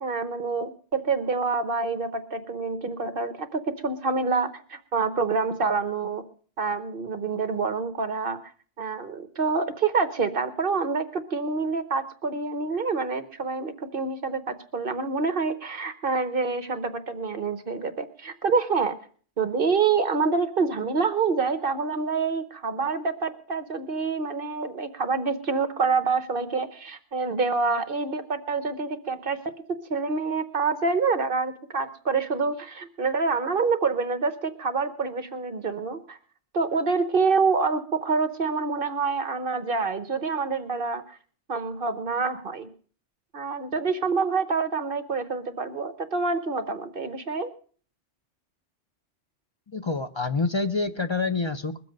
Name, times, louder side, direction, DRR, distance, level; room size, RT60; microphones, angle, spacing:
voice 1, 0.0-6.2 6.6-8.4 8.8-18.9 19.4-29.4 29.9-36.2 36.5-41.2 41.5-42.7 43.3-47.5, right 4 dB, 50° right, 10 dB, 1.1 m, -27 dB
voice 2, 49.7-51.8, left 3 dB, 35° left, 9 dB, 0.5 m, -27 dB
21.0 x 7.6 x 5.2 m, 0.43 s
omnidirectional pair, 1.2 m